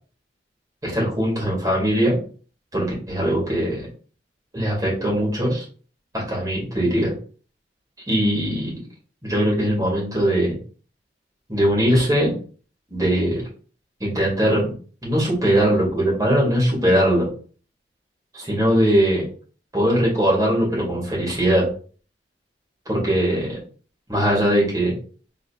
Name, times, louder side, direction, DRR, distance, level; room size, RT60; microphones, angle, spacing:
voice 1, 0.8-2.2 2.7-3.9 4.5-5.6 6.1-7.1 8.1-8.8 9.2-10.6 11.5-12.3 12.9-13.4 14.0-14.7 15.0-17.3 18.3-19.3 19.7-21.7 22.9-23.6 24.1-24.9, equal, 20° right, -4 dB, 2.3 m, -20 dB
5.1 x 3.8 x 2.5 m, 0.40 s
head